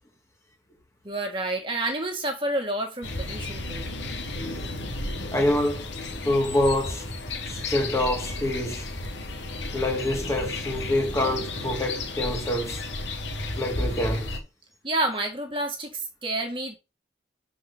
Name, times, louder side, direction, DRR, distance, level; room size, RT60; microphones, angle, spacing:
voice 1, 1.0-3.9 14.8-16.8, right 2 dB, 30° right, 1.8 m, -29 dB
sound 1, 3.0-14.4, left 2 dB, 85° left, 1.8 m, -33 dB
voice 2, 5.3-5.8 6.2-7.1 7.4-8.9 9.7-12.8 13.6-14.3, left 1 dB, 15° left, 1.8 m, -26 dB
6.3 x 4.8 x 6.2 m
head